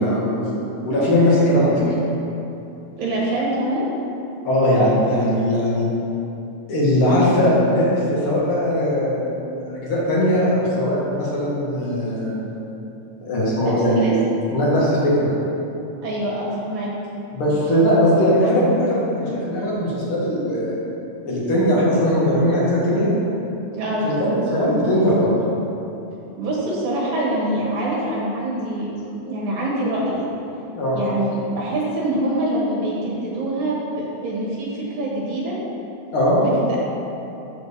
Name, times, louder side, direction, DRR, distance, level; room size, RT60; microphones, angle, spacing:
voice 1, 0.0-1.9 4.4-5.9 6.7-12.4 13.2-14.2 14.5-15.3 17.3-20.8 21.2-23.1 24.0-25.4 30.8-31.0 36.1-36.4, equal, 45° left, -7 dB, 2.1 m, -19 dB
voice 2, 3.0-3.9 13.6-14.1 16.0-16.9 23.7-24.0 26.4-28.9 29.2-30.3 30.9-35.6 36.4-36.8, right 1 dB, 75° right, -5 dB, 3.1 m, -25 dB
7.5 x 4.5 x 6.8 m, 2.9 s
omnidirectional pair, 4.1 m